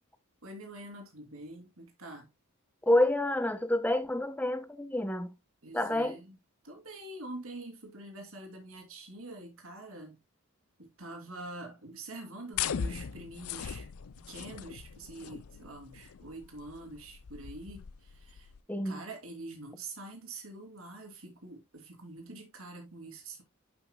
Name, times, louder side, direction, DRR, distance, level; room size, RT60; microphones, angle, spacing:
voice 1, 0.4-2.3 5.6-6.4 6.6-10.2 10.8-13.9 14.2-18.5 18.8-23.4, right 2 dB, 70° right, 2.9 m, -45 dB
voice 2, 2.9-5.3 5.7-6.2 18.7-19.0, left 1 dB, 5° left, 0.9 m, -28 dB
sound 1, 12.5-18.6, left 8 dB, 75° left, 0.4 m, -39 dB
11.5 x 5.9 x 2.3 m
head